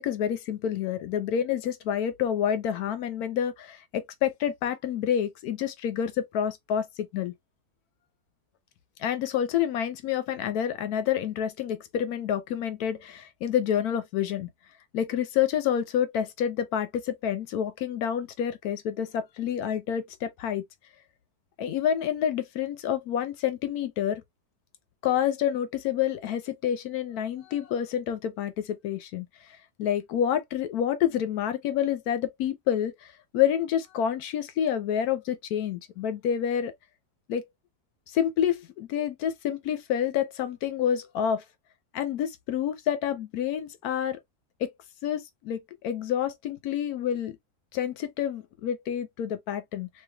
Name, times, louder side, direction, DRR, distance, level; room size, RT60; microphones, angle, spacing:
voice 1, 0.0-7.3 9.0-14.5 14.9-20.6 21.6-24.2 25.0-29.3 29.8-36.7 37.3-37.4 38.1-41.4 41.9-44.2 44.6-44.7 45.0-47.4 47.7-49.9, left 9 dB, 75° left, 1.1 m, -28 dB
3.2 x 2.9 x 2.2 m
omnidirectional pair, 1.7 m